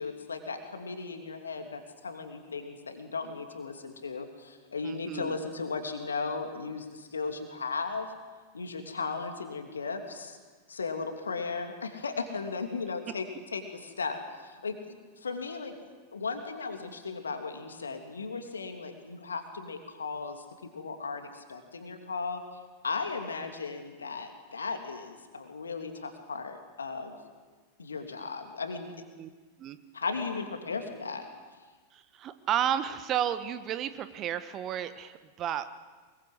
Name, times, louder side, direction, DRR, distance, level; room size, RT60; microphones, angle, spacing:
voice 1, 0.0-8.1 8.5-10.4 10.7-15.7 16.1-22.4 22.8-27.2 27.8-28.9 29.9-31.3, left 4 dB, 75° left, 5 dB, 2.8 m, -36 dB
voice 2, 4.8-5.4 13.1-13.2 29.2-29.3 29.6-29.8 31.9-35.7, right 10 dB, 30° right, 12 dB, 1.3 m, -32 dB
23.0 x 22.0 x 7.9 m, 1.4 s
figure-of-eight pair, 90°, 0 cm